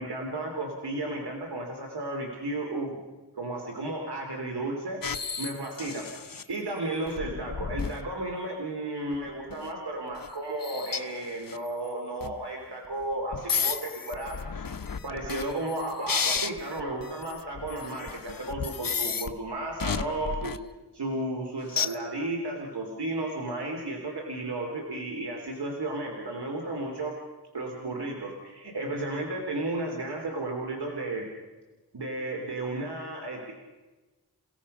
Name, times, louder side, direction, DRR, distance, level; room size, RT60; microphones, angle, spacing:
voice 1, 0.0-3.0 3.3-5.0 5.4-14.7 15.0-20.5 20.9-27.1 27.5-31.2 31.9-33.5, right 2 dB, 75° right, 1 dB, 3.2 m, -33 dB
sound 1, 5.0-6.4 7.1-8.1 9.1-9.7 10.2-10.3 10.6-11.6 12.2-12.4 13.3-19.3 19.8-20.6 21.7-22.0, left 6 dB, 55° left, 1.0 m, -33 dB
30.0 x 17.0 x 5.5 m, 1.2 s
wide cardioid pair, 55°, 40 cm